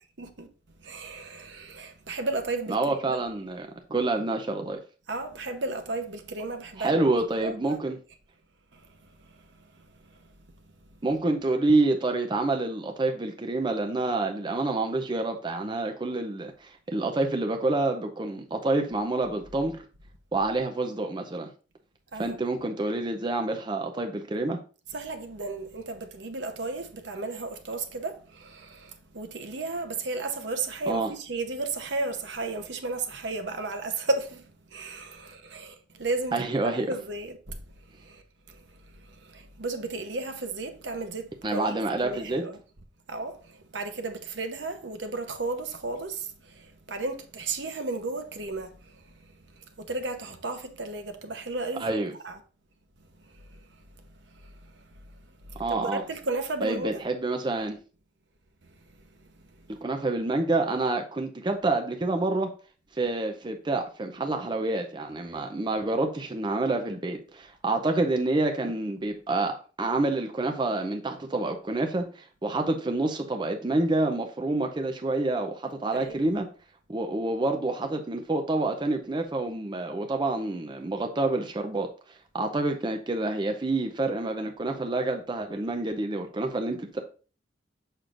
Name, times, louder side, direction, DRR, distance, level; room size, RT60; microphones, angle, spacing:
voice 1, 0.2-0.5 0.8-3.2 5.1-7.0 7.4-7.8 8.7-9.5 9.7-10.3 22.1-22.6 24.9-36.4 36.6-38.2 38.5-42.6 43.1-52.0 52.2-52.4 53.2-53.7 54.0-57.1 58.6-58.9 59.2-59.7 75.9-76.3, right 3 dB, 70° right, 0.9 m, -34 dB
voice 2, 2.7-4.8 6.8-8.0 11.0-19.8 20.3-21.5 22.2-24.6 30.9-31.1 36.3-36.9 41.4-42.4 51.8-52.1 55.6-56.0 56.6-57.8 59.7-62.5 62.9-76.5 76.9-81.9 82.3-87.0, right 2 dB, 25° right, 0.5 m, -28 dB
6.6 x 6.0 x 2.5 m
head